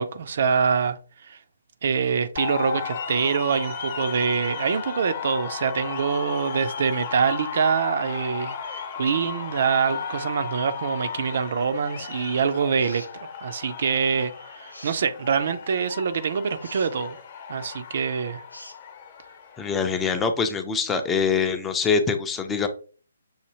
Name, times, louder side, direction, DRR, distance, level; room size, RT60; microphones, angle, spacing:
voice 1, 0.0-1.4 1.8-13.0 13.4-17.2 17.5-18.4, right 6 dB, 50° right, 0.5 m, -25 dB
sound 1, 2.4-20.1, left 6 dB, 35° left, 0.9 m, -35 dB
sound 2, 12.8-13.2 14.7-15.1 16.6-16.9 18.5-18.8, left 1 dB, 90° left, 0.8 m, -43 dB
voice 2, 19.6-22.7, left 5 dB, 10° left, 0.5 m, -24 dB
6.3 x 2.6 x 2.9 m
figure-of-eight pair, 135°, 0 cm